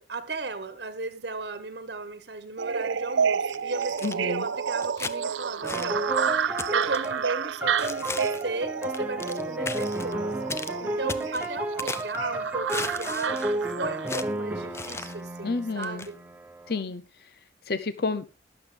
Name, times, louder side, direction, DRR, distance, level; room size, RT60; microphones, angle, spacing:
voice 1, 0.0-6.0 6.4-10.3 10.6-16.2, right 3 dB, 65° right, 1.3 m, -35 dB
sound 1, 2.6-14.1, right 7 dB, 85° right, 0.5 m, -30 dB
sound 2, 3.5-4.1 4.8-5.2 5.6-5.9 6.6-7.1 7.8-8.5 8.8-9.4 9.7-10.1 10.5-10.7 11.1-12.2 12.7-13.5 14.1-14.3 14.7-15.2 15.8-16.1, left 3 dB, 15° left, 0.5 m, -36 dB
voice 2, 4.0-4.4 15.4-16.1 16.7-17.0 17.7-18.3, left 3 dB, 55° left, 0.7 m, -30 dB
sound 3, 5.6-16.8, right 1 dB, 10° right, 1.0 m, -33 dB
20.5 x 7.1 x 3.4 m
head